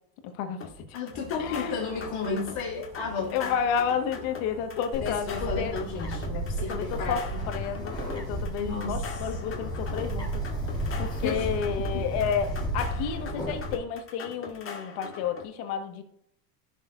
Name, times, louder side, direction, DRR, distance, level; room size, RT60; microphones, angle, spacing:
voice 1, 0.2-0.9 1.4-1.8 3.3-5.7 6.6-10.4 11.0-16.0, left 7 dB, 60° left, 6 dB, 1.7 m, -31 dB
sound 1, 0.6-15.5, left 5 dB, 25° left, 2.0 m, -42 dB
voice 2, 0.9-3.5 5.0-7.4 8.6-9.2 11.2-11.5 11.8-12.0, left 5 dB, 45° left, -2 dB, 3.4 m, -33 dB
sound 2, 1.1-9.0, left 1 dB, 10° right, 1.6 m, -49 dB
Bird, 4.9-13.7, right 1 dB, 10° left, 3.6 m, -33 dB
15.5 x 6.6 x 2.6 m, 0.75 s
supercardioid pair, 120°, 49 cm